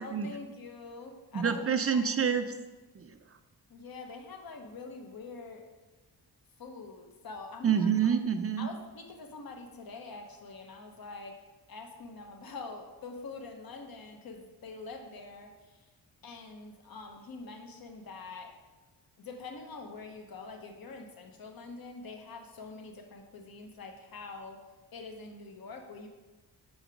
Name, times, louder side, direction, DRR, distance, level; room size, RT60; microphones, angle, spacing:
voice 1, 0.0-1.6 1.9-2.1 3.7-5.7 6.6-7.9 8.6-11.4 11.7-15.8 16.2-18.5 19.2-24.6 24.9-26.1, left 3 dB, 55° left, 4 dB, 1.0 m, -45 dB
voice 2, 1.3-2.4 2.9-3.1 7.6-8.7, right 7 dB, 35° right, 8 dB, 0.5 m, -27 dB
5.2 x 5.0 x 4.8 m, 1.2 s
cardioid pair, 60°, 43 cm